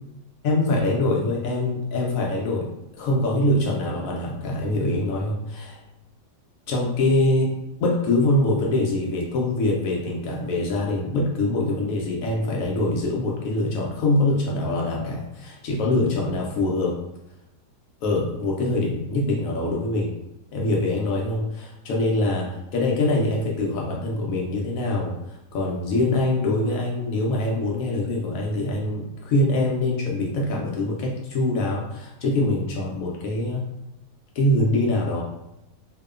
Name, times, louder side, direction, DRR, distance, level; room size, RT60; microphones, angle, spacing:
voice 1, 0.4-5.8 6.7-7.5 7.8-16.9 18.0-20.1 20.5-25.1 25.5-33.6 34.3-35.2, left 2 dB, 70° left, -2 dB, 0.8 m, -24 dB
2.8 x 2.1 x 2.3 m, 0.90 s
omnidirectional pair, 1.8 m